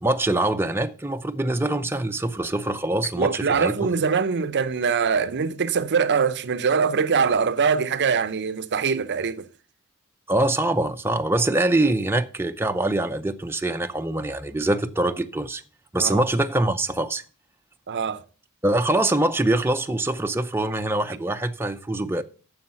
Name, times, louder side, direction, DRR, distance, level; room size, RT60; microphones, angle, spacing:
voice 1, 0.0-3.9 10.3-15.6 15.9-17.2 18.6-22.2, right 1 dB, 10° right, 0.5 m, -24 dB
voice 2, 3.2-9.5 16.0-16.2 17.9-18.2, right 5 dB, 50° right, 0.6 m, -23 dB
9.5 x 7.1 x 5.8 m
head